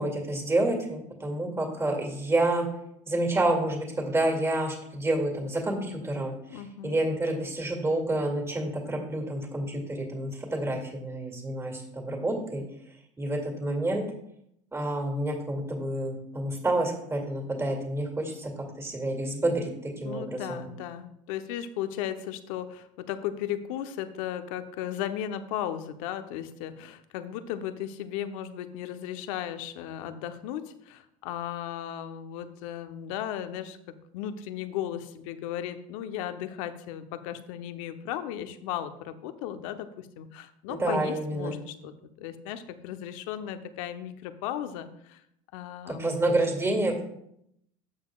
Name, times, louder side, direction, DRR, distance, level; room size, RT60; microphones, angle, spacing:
voice 1, 0.0-2.6 3.1-12.6 13.2-14.0 14.7-18.5 18.8-20.7 40.7-41.6 45.9-47.0, right 1 dB, 15° right, 2 dB, 2.2 m, -29 dB
voice 2, 6.5-7.0 20.0-33.8 34.1-41.9 42.2-45.2 45.5-46.5, left 10 dB, 75° left, 9 dB, 0.8 m, -36 dB
12.0 x 6.5 x 2.4 m, 0.74 s
supercardioid pair, 95°, 18 cm